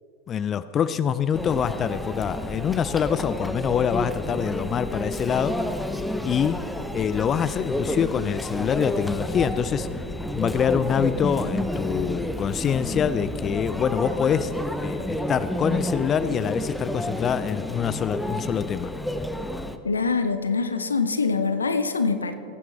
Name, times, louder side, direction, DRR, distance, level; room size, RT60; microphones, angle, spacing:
voice 1, 0.3-5.6 6.2-6.6 6.9-10.0 10.3-14.5 14.8-18.9, left 8 dB, 30° left, 14 dB, 0.4 m, -25 dB
Conversation / Chatter / Crowd, 1.3-19.8, left 1 dB, 5° left, 0.7 m, -30 dB
voice 2, 19.8-22.3, left 4 dB, 85° left, 10 dB, 0.7 m, -24 dB
19.0 x 9.3 x 3.4 m, 2.7 s
hypercardioid pair, 85°, 0 cm